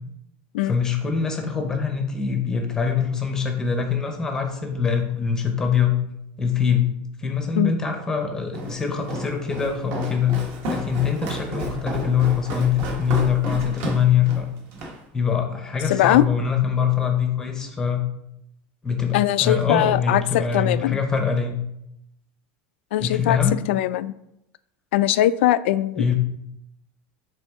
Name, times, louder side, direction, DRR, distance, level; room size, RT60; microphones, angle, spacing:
voice 1, 0.6-6.0 6.4-6.9 7.2-10.4 10.7-14.5 15.1-18.0 18.8-21.6 23.0-23.6 26.0-26.1, left 7 dB, 10° left, 3 dB, 0.7 m, -23 dB
Walk footsteps, 8.5-15.0, right 1 dB, 45° right, 1.2 m, -32 dB
voice 2, 15.9-16.3 19.1-21.0 22.9-23.4 23.7-24.1 24.9-26.1, left 13 dB, 85° left, 14 dB, 0.3 m, -21 dB
8.3 x 3.5 x 3.5 m, 0.80 s
supercardioid pair, 180°, 6 cm